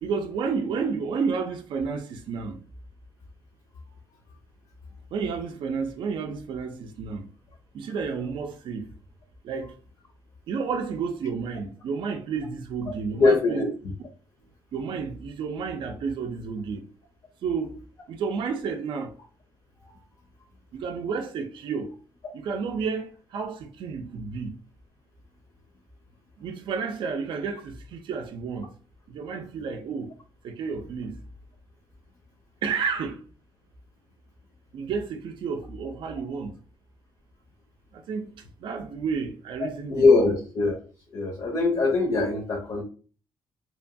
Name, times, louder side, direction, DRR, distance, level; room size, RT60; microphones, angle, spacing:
voice 1, 0.0-2.6 5.1-7.3 7.7-8.9 9.4-9.7 10.5-13.7 14.7-16.9 17.4-17.8 18.1-19.1 20.7-21.9 22.3-24.6 26.4-28.7 29.1-30.1 30.4-31.2 32.6-33.2 34.7-36.6 37.9-40.3, right 5 dB, 60° right, 0.4 m, -31 dB
voice 2, 13.1-13.7 39.6-40.8 41.1-42.8, left 3 dB, 45° left, 0.5 m, -22 dB
2.8 x 2.2 x 2.5 m
cardioid pair, 165°, 9 cm